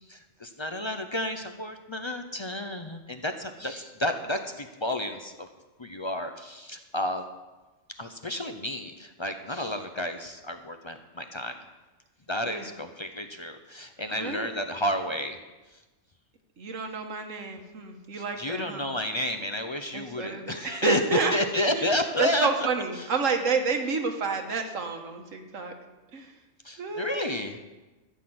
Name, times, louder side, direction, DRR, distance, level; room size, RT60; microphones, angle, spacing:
voice 1, 0.1-5.5 5.8-7.2 7.9-11.6 12.3-15.4 18.1-22.5 23.0-23.1 26.6-27.6, left 1 dB, 30° left, 7 dB, 0.5 m, -31 dB
voice 2, 14.1-14.5 16.6-18.9 19.9-21.3 21.7-25.7 26.1-26.3 26.8-27.4, right 5 dB, 85° right, 4 dB, 1.6 m, -30 dB
13.5 x 6.3 x 7.8 m, 1.2 s
omnidirectional pair, 1.3 m